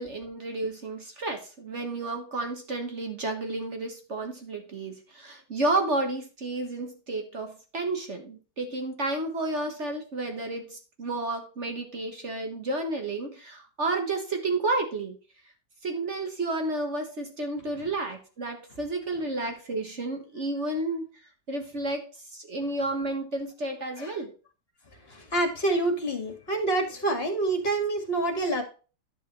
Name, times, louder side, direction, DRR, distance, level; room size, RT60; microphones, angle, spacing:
voice 1, 0.0-15.1 15.8-21.1 21.5-24.3, right 2 dB, 45° right, 4 dB, 1.6 m, -31 dB
voice 2, 25.1-28.6, right 2 dB, 35° left, 3 dB, 2.2 m, -27 dB
10.5 x 7.0 x 3.1 m, 0.34 s
omnidirectional pair, 1.8 m